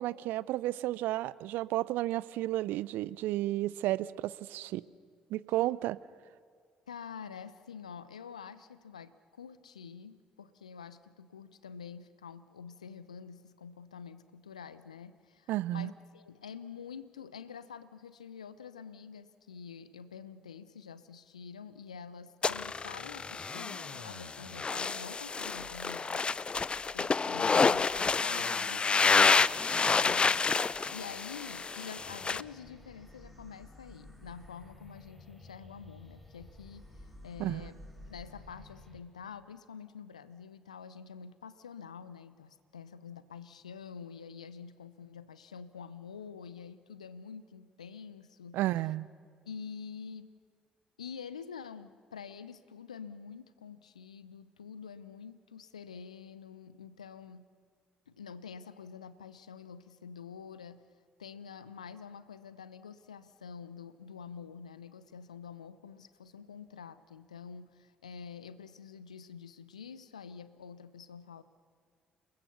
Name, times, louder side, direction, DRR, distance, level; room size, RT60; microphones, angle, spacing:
voice 1, 0.0-4.8 5.3-6.0 15.5-15.9 37.4-37.7 48.5-49.1, right 16 dB, 60° right, 20 dB, 0.6 m, -32 dB
voice 2, 6.9-29.3 30.0-37.8 38.1-48.6 49.5-50.4 51.0-57.5 58.1-60.8 61.2-71.4, left 6 dB, 85° left, 15 dB, 0.7 m, -47 dB
sound 1, 22.4-32.4, left 4 dB, 30° left, 0.5 m, -29 dB
sound 2, 32.0-39.0, left 1 dB, ahead, 4.1 m, -52 dB
30.0 x 19.5 x 6.9 m, 2.1 s
figure-of-eight pair, 45°, 4 cm